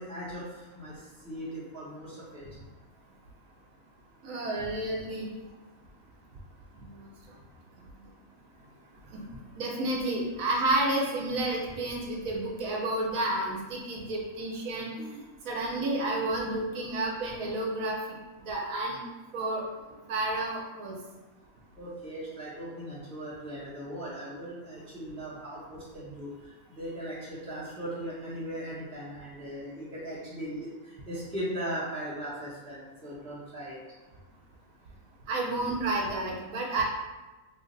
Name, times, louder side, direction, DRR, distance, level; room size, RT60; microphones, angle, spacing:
voice 1, 0.0-2.5 21.8-26.3 26.8-33.8, right 1 dB, 5° left, -9 dB, 0.6 m, -38 dB
voice 2, 4.2-5.3 6.8-7.0 9.1-9.2 9.6-19.6 20.1-20.9 35.3-36.8, right 2 dB, 70° right, -2 dB, 1.0 m, -31 dB
3.1 x 2.1 x 3.8 m, 1.2 s
omnidirectional pair, 1.5 m